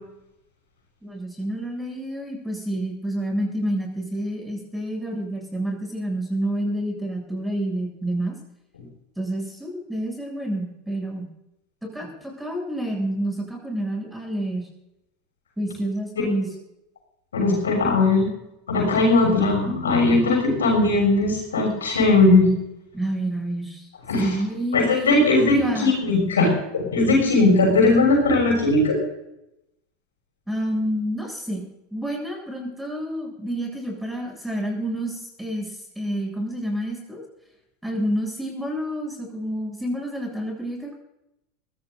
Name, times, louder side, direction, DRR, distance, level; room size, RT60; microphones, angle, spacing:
voice 1, 1.0-8.4 9.2-11.3 11.8-14.7 15.6-16.5 22.9-23.9 24.2-25.9 30.5-31.6 31.9-37.2 37.8-40.9, right 1 dB, 5° right, 0 dB, 7.7 m, -29 dB
voice 2, 17.3-18.3 18.7-22.5 24.1-24.3 24.7-29.0, left 2 dB, 80° left, 0 dB, 6.6 m, -19 dB
23.0 x 16.5 x 2.7 m, 0.86 s
hypercardioid pair, 85°, 0 cm